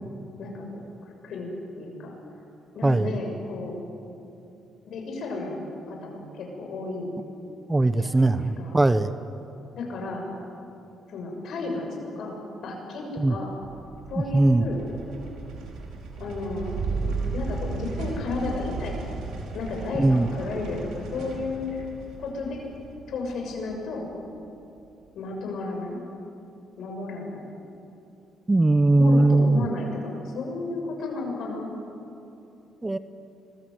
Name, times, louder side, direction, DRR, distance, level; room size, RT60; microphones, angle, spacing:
voice 1, 1.8-2.2 2.7-3.8 4.8-7.1 8.0-8.8 9.7-10.2 11.1-13.5 14.1-14.9 16.2-19.0 19.5-21.9 22.2-22.6 23.1-24.1 25.1-26.0 26.8-27.4 28.9-31.8, left 3 dB, 70° left, 1 dB, 6.9 m, -33 dB
voice 2, 2.8-3.2 7.7-9.1 13.2-13.4 14.3-14.6 20.0-20.3 28.5-29.6 32.8-33.0, right 2 dB, 15° right, 12 dB, 0.9 m, -20 dB
sound 1, 13.6-24.0, right 4 dB, 90° right, 4.8 m, -35 dB
26.0 x 21.5 x 8.0 m, 2.8 s
cardioid pair, 90°, 0 cm